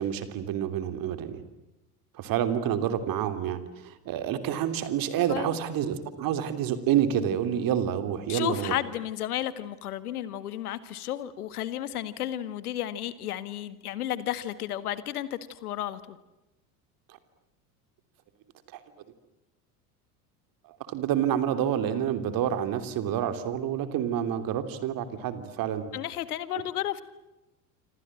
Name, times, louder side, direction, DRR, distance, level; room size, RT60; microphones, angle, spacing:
voice 1, 0.0-1.4 2.1-8.8 17.1-17.2 18.7-18.8 20.7-25.9, right 9 dB, 45° right, 10 dB, 3.2 m, -28 dB
voice 2, 8.3-16.2 25.9-27.0, left 12 dB, 70° left, 15 dB, 1.8 m, -33 dB
27.0 x 26.5 x 7.7 m, 0.95 s
figure-of-eight pair, 70°, 46 cm